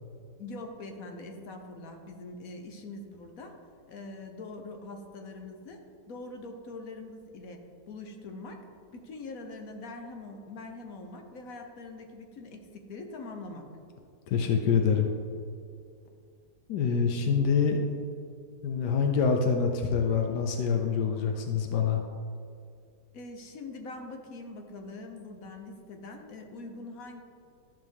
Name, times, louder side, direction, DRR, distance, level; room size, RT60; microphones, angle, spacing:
voice 1, 0.4-3.5 3.9-5.8 6.1-8.6 8.9-13.8 23.1-27.2, left 2 dB, 60° left, 4 dB, 1.3 m, -43 dB
voice 2, 14.3-15.1 16.7-17.8 18.6-22.0, left 6 dB, 90° left, 3 dB, 1.3 m, -26 dB
13.5 x 5.6 x 3.5 m, 2.4 s
omnidirectional pair, 1.7 m